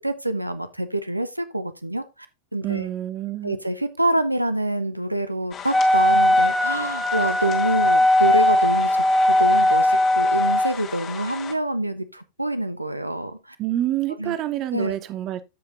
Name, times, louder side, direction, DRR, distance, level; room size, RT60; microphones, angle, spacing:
voice 1, 0.0-2.3 2.5-2.9 3.4-13.6 14.2-14.4 14.7-14.9, right 1 dB, 85° right, 0.5 m, -26 dB
voice 2, 2.6-3.6 13.6-15.4, right 13 dB, 35° right, 0.7 m, -27 dB
sound 1, 5.5-11.5, left 7 dB, 25° left, 1.3 m, -36 dB
Wind instrument woodwind instrument, 5.7-10.7, left 1 dB, 5° left, 0.7 m, -19 dB
14.0 x 5.2 x 2.5 m
figure-of-eight pair, 90°, 0 cm